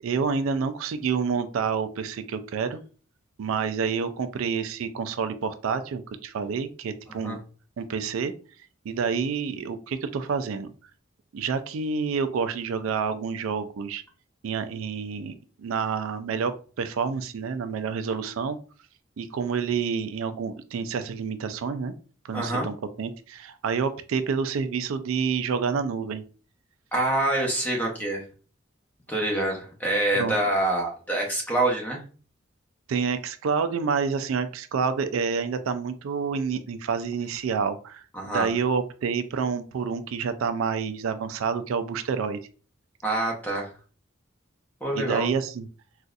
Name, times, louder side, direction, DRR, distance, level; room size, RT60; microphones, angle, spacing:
voice 1, 0.0-2.8 3.4-7.4 7.8-8.3 8.9-10.7 11.3-14.0 14.4-15.3 15.6-18.6 19.2-21.9 22.2-26.2 30.2-30.3 32.9-42.4 45.0-45.7, right 5 dB, 90° right, 10 dB, 0.4 m, -28 dB
voice 2, 7.1-7.4 22.3-22.7 26.9-28.2 29.1-32.0 38.1-38.5 43.0-43.7 44.8-45.3, right 1 dB, 10° left, 0 dB, 0.8 m, -26 dB
3.9 x 2.4 x 2.4 m, 0.38 s
head